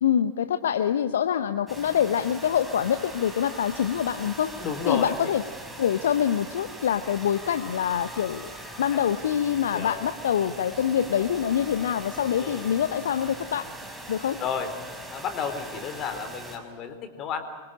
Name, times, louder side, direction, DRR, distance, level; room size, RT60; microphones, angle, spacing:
voice 1, 0.0-4.5 4.9-5.4 5.8-8.5 8.8-13.7 14.1-14.4, left 9 dB, 60° left, 12 dB, 0.8 m, -25 dB
sound 1, 1.7-16.6, right 1 dB, 10° right, 5.2 m, -41 dB
voice 2, 4.6-5.1 9.7-10.0 12.4-12.7 14.4-14.7 15.1-17.4, left 7 dB, 35° left, 8 dB, 3.9 m, -31 dB
25.5 x 23.5 x 8.6 m, 1.5 s
figure-of-eight pair, 90°, 0 cm